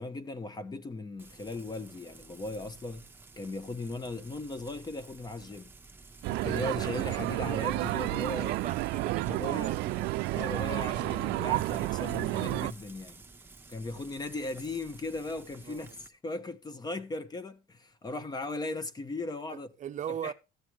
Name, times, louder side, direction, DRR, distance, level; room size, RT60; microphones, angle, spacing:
voice 1, 0.0-3.1 3.4-5.7 6.3-8.5 9.3-9.7 10.3-13.2 13.7-19.7 20.1-20.3, left 2 dB, 25° left, 1.1 m, -38 dB
Frying (food), 1.2-16.1, right 3 dB, 10° right, 1.1 m, -53 dB
sound 1, 6.2-12.7, right 19 dB, 85° right, 0.4 m, -31 dB
voice 2, 8.4-10.2 15.7-15.8 19.5-20.3, right 9 dB, 45° right, 0.6 m, -38 dB
14.0 x 7.2 x 3.2 m
cardioid pair, 110°, 17 cm